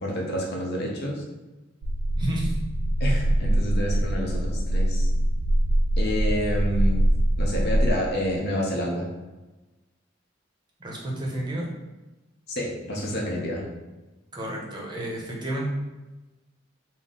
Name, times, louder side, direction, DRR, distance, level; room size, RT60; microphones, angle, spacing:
voice 1, 0.0-1.2 3.0-5.1 6.0-7.0 7.4-9.1 12.5-13.7, equal, 55° left, -2 dB, 0.8 m, -28 dB
sound 1, 1.8-7.9, right 1 dB, 80° right, 0.3 m, -23 dB
voice 2, 2.2-2.5 10.8-11.7 14.3-15.7, right 1 dB, 25° right, -3 dB, 0.7 m, -30 dB
3.9 x 2.0 x 3.7 m, 1.1 s
head